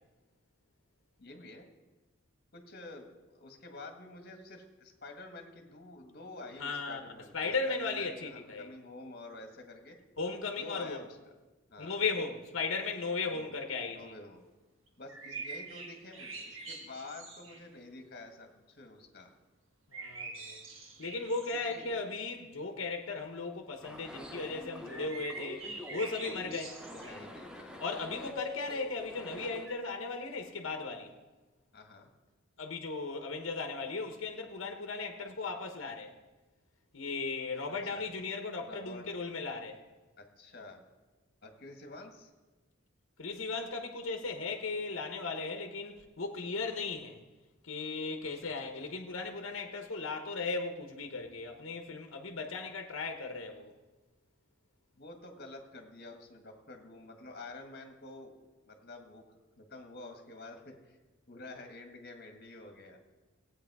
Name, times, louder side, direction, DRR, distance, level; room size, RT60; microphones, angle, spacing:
voice 1, 1.2-1.7 2.5-10.0 10.6-11.2 11.7-12.0 13.3-13.5 13.9-14.4 15.0-19.3 21.7-22.0 26.9-27.8 31.7-32.1 37.8-38.1 38.6-39.1 40.2-40.8 41.4-42.3 48.4-48.5 54.9-58.3 58.6-61.0 61.3-63.0, left 2 dB, 50° left, 1.6 m, -49 dB
voice 2, 6.6-7.0 7.3-8.7 10.2-11.0 11.8-14.1 19.9-20.6 21.0-26.8 27.8-31.1 32.6-36.1 36.9-39.8 43.2-47.2 47.6-53.7, left 4 dB, 65° left, 1.1 m, -36 dB
sound 1, 14.9-17.7 19.9-22.0 24.9-27.2 29.6-29.7, right 3 dB, 70° right, 1.9 m, -45 dB
sound 2, 23.8-29.7, left 1 dB, 5° right, 1.0 m, -45 dB
16.0 x 8.5 x 4.8 m
head